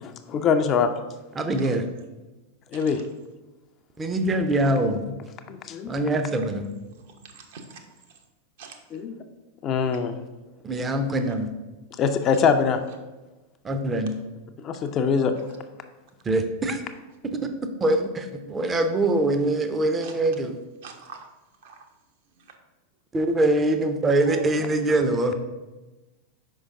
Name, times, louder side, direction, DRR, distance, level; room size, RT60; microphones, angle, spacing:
voice 1, 0.0-0.9 2.7-3.0 5.5-5.9 8.9-9.2 9.6-10.2 12.0-12.8 14.6-15.3, left 6 dB, 30° left, 7 dB, 0.5 m, -23 dB
voice 2, 1.4-1.8 4.0-5.1 5.9-6.7 10.6-11.5 13.6-14.2 16.3-16.8 17.8-20.5 23.1-25.3, right 1 dB, 20° right, 7 dB, 0.6 m, -23 dB
voice 3, 7.0-7.8 8.6-8.8 9.9-10.0 12.3-12.4 20.0-20.2 20.8-21.3 21.6-21.9 22.3-22.6 24.2-25.0, right 5 dB, 55° right, 3 dB, 0.9 m, -44 dB
5.4 x 5.0 x 3.6 m, 1.1 s
figure-of-eight pair, 90°, 0 cm